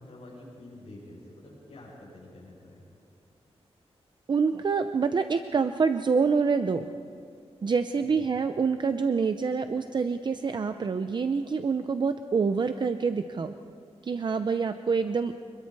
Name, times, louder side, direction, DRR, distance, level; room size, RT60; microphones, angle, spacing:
voice 1, 0.0-2.8 8.0-8.3, left 1 dB, 70° left, -7 dB, 6.5 m, -47 dB
voice 2, 4.3-6.9 7.6-13.5 14.0-15.3, right 5 dB, 45° right, 9 dB, 0.6 m, -26 dB
26.5 x 21.5 x 4.7 m, 2.6 s
wide cardioid pair, 175°, 11 cm